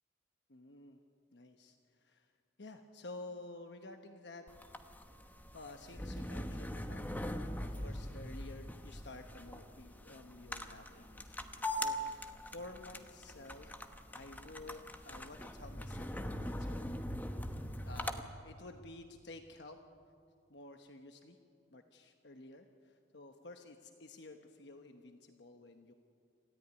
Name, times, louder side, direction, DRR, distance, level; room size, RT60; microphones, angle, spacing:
voice 1, 0.5-1.0 1.3-2.3 2.6-4.7 5.5-13.7 14.1-16.9 17.7-19.8 20.5-21.4 21.7-25.9, left 2 dB, 60° left, 6 dB, 1.1 m, -52 dB
sound 1, 4.5-18.2, left 1 dB, 10° left, 1.0 m, -42 dB
26.5 x 14.0 x 9.6 m, 2.4 s
head